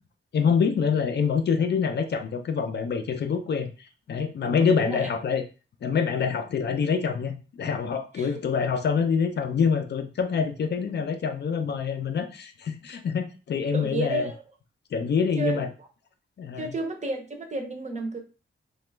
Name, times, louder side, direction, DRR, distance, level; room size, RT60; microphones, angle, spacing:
voice 1, 0.3-3.7 4.1-5.4 5.8-14.3 14.9-15.7 16.4-16.7, left 6 dB, 55° left, 6 dB, 0.4 m, -26 dB
voice 2, 4.6-5.2 8.1-8.3 13.7-14.4 15.4-15.7 16.6-18.2, right 3 dB, 35° right, 4 dB, 0.6 m, -31 dB
3.0 x 2.2 x 3.2 m, 0.34 s
wide cardioid pair, 165°, 21 cm